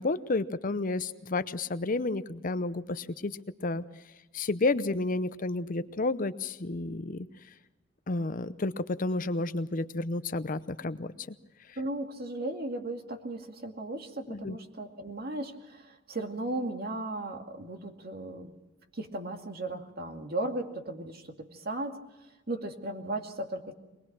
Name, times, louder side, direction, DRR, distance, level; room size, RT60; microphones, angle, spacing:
voice 1, 0.0-3.8 4.3-7.3 8.1-11.4 11.7-11.8 14.3-14.6, left 2 dB, 45° left, 13 dB, 0.8 m, -31 dB
voice 2, 11.8-18.5 18.9-22.0 22.5-23.7, right 2 dB, 55° right, 4 dB, 2.3 m, -36 dB
23.0 x 20.0 x 6.1 m, 1.0 s
head